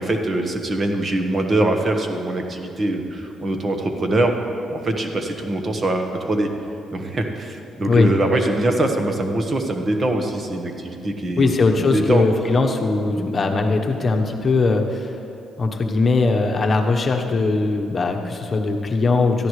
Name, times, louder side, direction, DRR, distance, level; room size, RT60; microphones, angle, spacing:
voice 1, 0.0-4.3 4.7-6.5 6.9-12.2, right 1 dB, 35° right, 4 dB, 1.3 m, -23 dB
voice 2, 11.4-15.1 15.6-19.5, left 3 dB, 40° left, 3 dB, 1.1 m, -20 dB
17.5 x 14.0 x 3.3 m, 2.6 s
cardioid pair, 90°, 0 cm